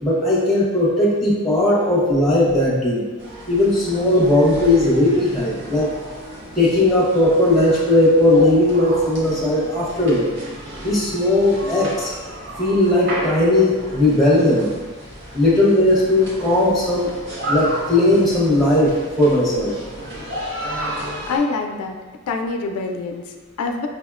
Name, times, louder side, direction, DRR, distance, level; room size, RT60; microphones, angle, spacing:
voice 1, 0.0-3.0 3.5-5.9 6.6-10.3 10.8-12.1 12.6-14.7 15.3-17.1 17.5-19.7, left 1 dB, ahead, -7 dB, 0.7 m, -17 dB
sound 1, 3.2-21.4, right 1 dB, 50° right, 0.7 m, -33 dB
voice 2, 21.3-22.0 22.3-23.9, left 4 dB, 85° left, 4 dB, 0.3 m, -25 dB
5.5 x 2.1 x 2.3 m, 1.3 s
head